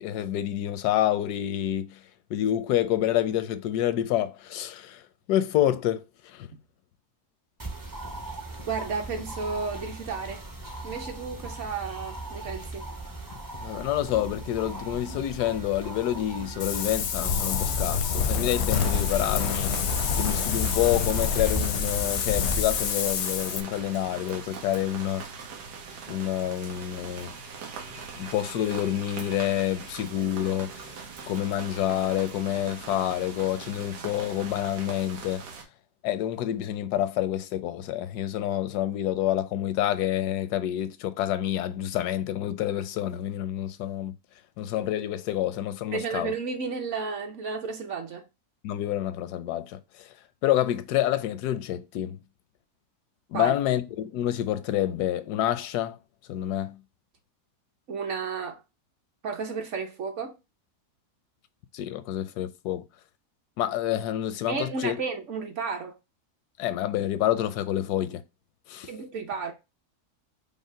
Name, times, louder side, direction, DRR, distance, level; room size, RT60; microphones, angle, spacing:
voice 1, 0.0-2.0 2.3-5.0 5.3-6.5 13.6-19.8 20.1-25.2 26.1-27.3 28.1-30.9 31.3-35.4 36.0-44.1 44.6-46.3 48.6-50.1 50.4-52.2 53.3-56.0 56.3-56.8 61.7-62.8 63.6-65.0 66.6-68.2 68.7-68.9, left 12 dB, 80° left, 1.1 m, -28 dB
sound 1, 7.6-22.6, right 2 dB, 25° right, 0.4 m, -38 dB
voice 2, 8.6-10.4 10.8-12.9 45.9-48.3 53.3-53.5 57.9-58.6 59.2-60.3 64.5-66.0 68.9-69.5, right 5 dB, 55° right, 1.0 m, -32 dB
Wind, 16.6-23.6, left 7 dB, 65° left, 0.7 m, -27 dB
sound 2, 18.8-35.6, right 5 dB, 85° right, 1.5 m, -41 dB
5.3 x 2.0 x 4.9 m
omnidirectional pair, 1.7 m